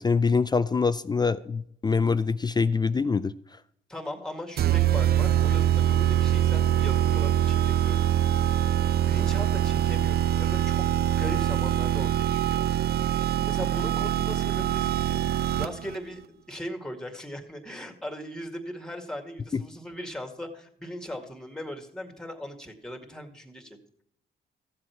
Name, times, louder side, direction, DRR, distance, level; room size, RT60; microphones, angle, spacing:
voice 1, 0.0-3.3, left 4 dB, 20° left, 14 dB, 0.4 m, -24 dB
voice 2, 3.9-8.1 9.1-12.7 13.5-15.2 15.6-24.0, equal, 5° left, 5 dB, 2.1 m, -39 dB
sound 1, 4.6-15.9, right 11 dB, 50° right, 0.5 m, -24 dB
14.5 x 7.7 x 4.6 m, 0.71 s
cardioid pair, 90°, 20 cm